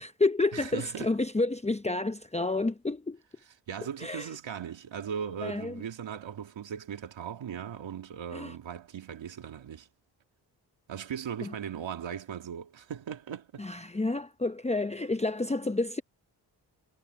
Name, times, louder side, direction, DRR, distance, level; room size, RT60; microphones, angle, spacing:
voice 1, 0.0-3.2 4.0-4.3 5.4-5.8 8.3-8.5 11.4-11.5 13.6-16.0, left 2 dB, 15° left, 0.9 m, -29 dB
voice 2, 0.5-1.1 3.7-9.9 10.9-13.7, right 8 dB, 85° right, 2.3 m, -38 dB
cardioid pair, 45°, 44 cm